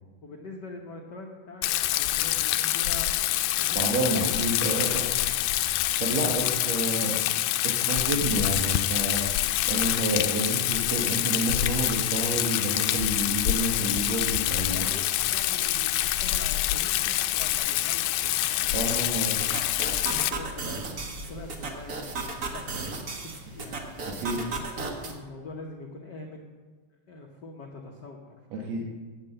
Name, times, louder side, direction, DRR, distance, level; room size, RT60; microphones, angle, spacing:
voice 1, 0.2-3.2 3.6-3.9 14.6-19.3 20.1-24.6 25.0-26.5 27.1-28.8, left 2 dB, 70° left, 1 dB, 1.0 m, -44 dB
Rain, 1.6-20.3, left 14 dB, 90° left, 2.1 m, -26 dB
voice 2, 3.7-5.1 6.0-7.2 7.6-9.3 9.7-14.9 18.7-19.4 24.2-24.4 28.5-28.8, right 2 dB, 65° right, -1 dB, 2.3 m, -29 dB
sound 1, 13.5-24.2, left 2 dB, 50° left, 0.8 m, -48 dB
sound 2, 19.4-25.1, right 3 dB, 50° right, 1.1 m, -35 dB
9.7 x 8.7 x 7.7 m, 1.4 s
omnidirectional pair, 3.5 m